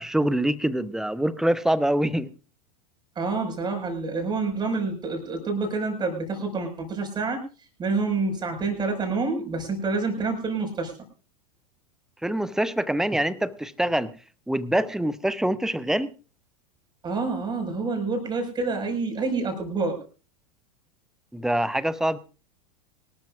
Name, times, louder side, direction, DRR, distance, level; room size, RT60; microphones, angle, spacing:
voice 1, 0.0-2.3 12.2-14.1 14.5-16.1 21.3-22.2, right 1 dB, ahead, 17 dB, 0.8 m, -25 dB
voice 2, 3.2-7.4 7.8-10.9 17.0-20.0, right 3 dB, 20° right, 4 dB, 5.6 m, -27 dB
24.5 x 13.0 x 2.5 m, 0.35 s
figure-of-eight pair, 85°, 20 cm